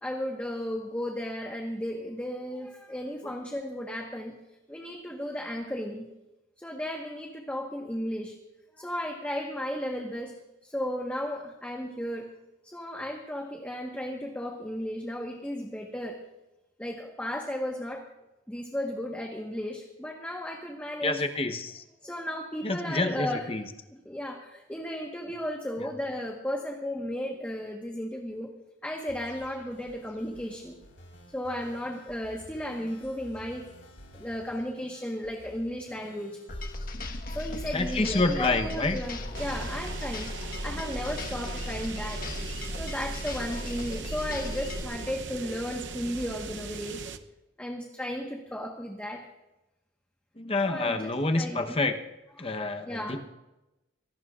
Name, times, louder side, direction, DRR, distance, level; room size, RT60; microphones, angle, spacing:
voice 1, 0.0-4.4 4.7-6.1 6.6-8.3 8.8-10.3 10.6-12.3 12.6-16.2 16.8-18.0 18.5-21.2 22.0-23.5 24.0-28.5 28.8-30.8 31.3-33.7 34.1-36.4 37.3-42.4 42.7-47.0 47.6-49.3 50.6-51.8 52.4-52.5 52.9-53.2, equal, 5° left, 0 dB, 1.3 m, -34 dB
voice 2, 21.0-21.8 22.6-23.7 37.7-39.0 50.4-52.0 52.4-53.2, left 2 dB, 30° left, 6 dB, 0.9 m, -28 dB
sound 1, 29.1-42.8, left 1 dB, 80° left, 3.9 m, -52 dB
sound 2, 36.5-44.8, left 1 dB, 45° left, 1.3 m, -36 dB
sound 3, 39.3-47.2, right 4 dB, 65° right, 0.8 m, -40 dB
25.5 x 17.5 x 2.5 m, 0.98 s
head